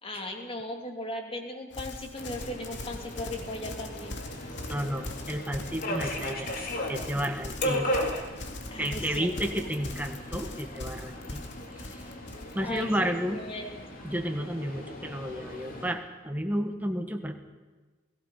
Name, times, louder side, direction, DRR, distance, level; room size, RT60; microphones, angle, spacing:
voice 1, 0.0-4.2 8.7-9.3 12.6-13.8, left 1 dB, 30° left, 3 dB, 2.8 m, -37 dB
Livestock farm animals working animals, 1.7-12.9, left 2 dB, 60° left, 2.3 m, -41 dB
Subway metro underground, 2.2-15.9, equal, 45° left, 3.3 m, -37 dB
voice 2, 4.7-6.5 6.9-7.9 8.8-11.5 11.7-12.0 12.5-13.4 14.0-17.4, equal, 10° right, 5 dB, 1.6 m, -32 dB
29.0 x 18.5 x 5.7 m, 1.3 s
head